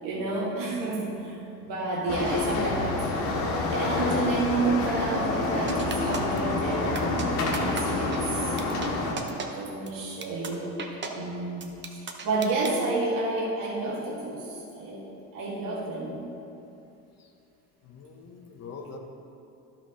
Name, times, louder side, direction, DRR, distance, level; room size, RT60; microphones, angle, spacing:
voice 1, 0.0-3.1 3.7-8.5 9.4-10.7 11.0-11.6 11.9-16.3, right 2 dB, 60° right, -5 dB, 2.1 m, -30 dB
sound 1, 2.1-9.1, left 2 dB, 85° left, 1.5 m, -28 dB
sound 2, 5.7-6.4 6.9-7.2 7.5-7.8 8.1-8.2 8.6-8.9 9.2-9.5 9.9-10.0 10.2-10.5 10.8-11.1 11.6-12.8, right 5 dB, 30° right, 0.9 m, -35 dB
voice 2, 17.8-19.0, left 4 dB, 45° left, 3 dB, 1.0 m, -44 dB
11.0 x 5.8 x 3.8 m, 2.8 s
supercardioid pair, 95°, 38 cm